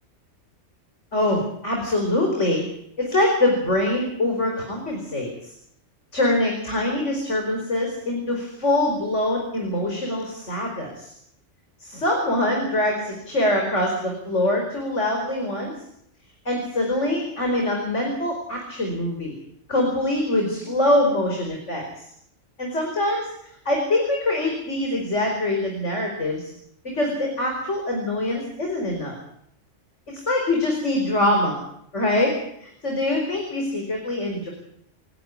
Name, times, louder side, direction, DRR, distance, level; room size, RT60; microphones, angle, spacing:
voice 1, 1.1-2.7 3.0-5.5 6.1-11.1 11.8-15.7 16.5-19.3 19.7-22.0 22.6-23.3 23.7-26.5 26.9-29.2 30.1-31.6 31.9-32.4 32.6-34.5, left 1 dB, 85° left, 1 dB, 5.3 m, -24 dB
29.0 x 11.5 x 9.6 m, 0.73 s
omnidirectional pair, 1.2 m